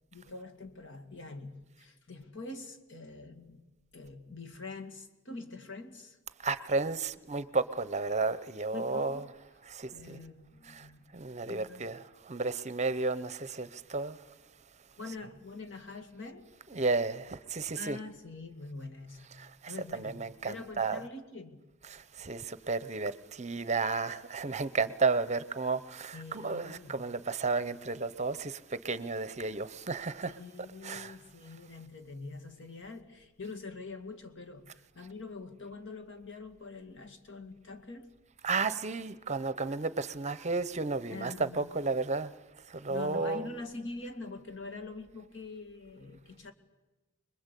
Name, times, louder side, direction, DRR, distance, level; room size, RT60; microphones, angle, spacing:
voice 1, 0.1-3.6 3.9-6.2 8.7-9.3 9.9-11.1 11.5-11.9 15.0-16.5 17.7-19.3 19.7-21.6 26.1-27.0 30.2-38.1 41.1-41.7 42.9-46.5, left 3 dB, 60° left, 2.2 m, -45 dB
voice 2, 6.4-9.3 9.7-10.2 10.7-10.8 11.1-14.2 15.1-15.2 16.7-18.0 19.4-21.1 21.8-28.6 28.8-30.4 30.8-31.2 38.4-42.3 42.7-43.5, right 4 dB, 30° right, 0.8 m, -33 dB
25.0 x 21.5 x 8.3 m
head